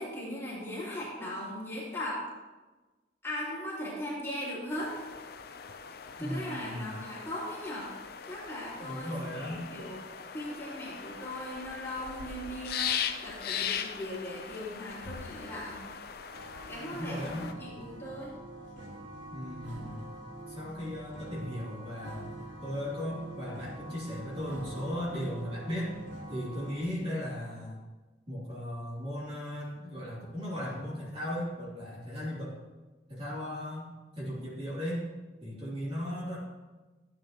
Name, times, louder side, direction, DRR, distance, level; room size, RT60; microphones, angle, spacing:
voice 1, 0.0-2.2 3.2-4.9 6.2-7.9 8.2-10.0 10.3-15.8 16.7-18.3, left 1 dB, 15° left, -8 dB, 3.1 m, -38 dB
sound 1, 4.7-17.5, left 8 dB, 55° left, 0.6 m, -39 dB
voice 2, 6.2-6.9 8.8-9.6 16.9-17.5 19.3-20.1 20.5-26.0 26.3-27.8 28.3-32.6 33.1-33.9 34.2-35.1 35.4-36.4, equal, 35° right, -7 dB, 3.1 m, -37 dB
sound 2, 16.3-26.8, right 1 dB, 90° right, 1.9 m, -45 dB
13.0 x 9.1 x 3.0 m, 1.2 s
head